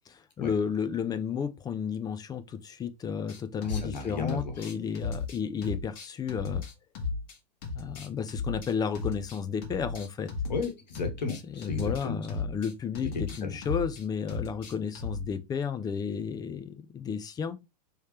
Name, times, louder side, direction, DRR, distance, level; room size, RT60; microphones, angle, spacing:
voice 1, 0.1-6.7 7.7-10.3 11.5-17.6, left 6 dB, 20° left, 0.4 m, -32 dB
sound 1, 3.3-4.0 4.3-7.4 7.6-10.7 10.9-15.3, left 4 dB, 50° left, 1.3 m, -35 dB
voice 2, 3.6-4.7 10.5-12.2 13.4-13.6, left 4 dB, 85° left, 1.2 m, -34 dB
3.2 x 2.9 x 3.2 m
hypercardioid pair, 105°, 21 cm